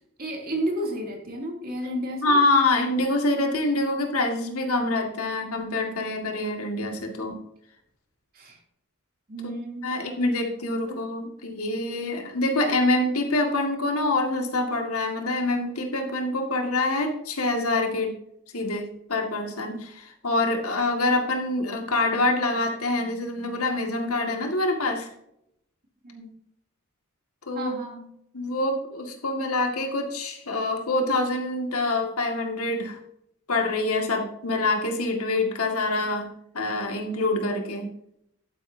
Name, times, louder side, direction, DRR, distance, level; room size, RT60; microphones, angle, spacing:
voice 1, 0.2-2.4 8.3-8.6 9.3-10.2 26.0-26.3 27.5-28.1, right 1 dB, 40° right, 1 dB, 2.8 m, -32 dB
voice 2, 2.2-7.4 9.8-18.1 18.5-25.1 27.5-27.7 28.3-33.0 33.5-37.9, left 2 dB, 90° left, 3 dB, 2.1 m, -26 dB
11.5 x 9.8 x 2.8 m, 0.75 s
head